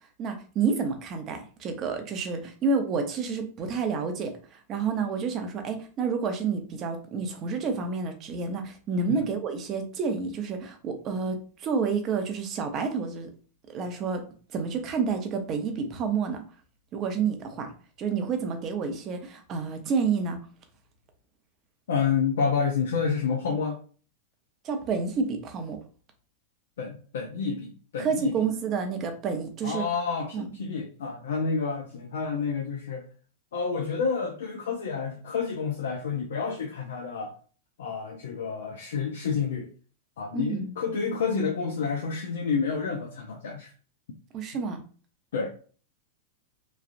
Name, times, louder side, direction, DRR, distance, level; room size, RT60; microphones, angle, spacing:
voice 1, 0.2-13.3 13.7-14.2 14.5-16.4 16.9-17.7 18.0-20.4 24.6-25.8 28.0-29.8 30.3-30.5 40.3-40.7 44.3-44.8, right 5 dB, 35° right, 5 dB, 0.7 m, -29 dB
voice 2, 21.9-23.8 26.8-28.5 29.6-33.1 33.5-37.3 37.8-39.7 40.2-43.7 45.3-45.5, left 5 dB, 75° left, 1 dB, 0.5 m, -29 dB
3.1 x 2.4 x 2.5 m, 0.41 s
hypercardioid pair, 105°, 0 cm